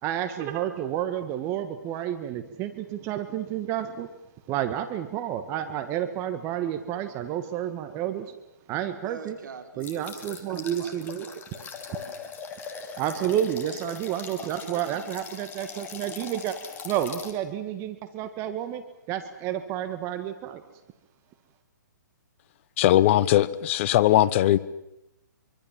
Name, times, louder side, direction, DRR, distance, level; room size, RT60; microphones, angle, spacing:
voice 1, 0.0-4.2 4.5-8.3 8.7-9.4 9.8-11.3 13.0-16.6 16.8-18.8 19.1-20.6, right 10 dB, 25° right, 1.7 m, -30 dB
voice 2, 9.0-12.2 14.3-15.1, right 5 dB, 70° right, 4.5 m, -45 dB
sound 1, 9.8-17.3, left 6 dB, 20° left, 2.9 m, -41 dB
voice 3, 22.8-24.6, left 13 dB, 40° left, 0.9 m, -20 dB
25.0 x 24.5 x 7.5 m
hypercardioid pair, 140°, 10 cm